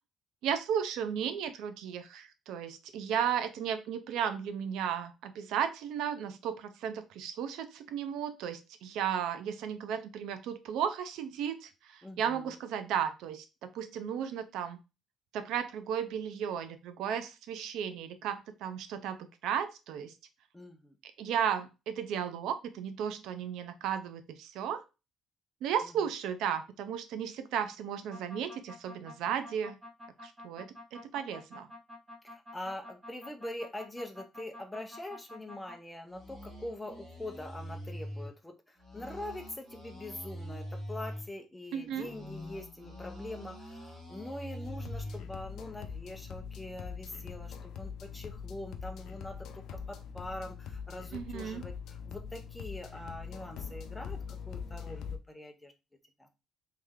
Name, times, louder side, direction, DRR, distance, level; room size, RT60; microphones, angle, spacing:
voice 1, 0.4-14.8 15.3-20.1 21.2-24.8 25.6-29.8 30.2-31.7 41.7-42.1 51.1-51.7, right 8 dB, 80° right, 10 dB, 0.5 m, -34 dB
voice 2, 12.0-12.5 20.5-21.0 25.8-25.9 32.2-55.7 56.2-56.3, left 1 dB, 10° left, 4 dB, 0.6 m, -43 dB
sound 1, 28.1-35.8 36.1-38.3 38.8-41.3 41.8-45.2, equal, 20° right, 1.5 m, -45 dB
sound 2, 44.6-55.2, left 6 dB, 60° left, 0.5 m, -43 dB
3.3 x 3.2 x 3.5 m, 0.28 s
cardioid pair, 170°, 0 cm